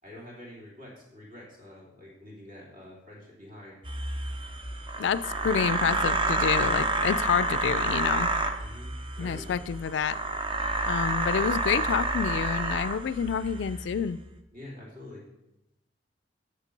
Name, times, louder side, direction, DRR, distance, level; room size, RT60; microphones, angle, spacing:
voice 1, 0.0-3.8 8.6-9.7 14.5-15.2, left 1 dB, 45° right, -3 dB, 3.1 m, -46 dB
sound 1, 3.8-14.0, right 2 dB, 30° right, 0.7 m, -29 dB
voice 2, 5.0-8.3 9.2-10.2 10.8-14.2, left 7 dB, 70° left, 17 dB, 0.3 m, -28 dB
8.2 x 6.6 x 5.2 m, 0.90 s
head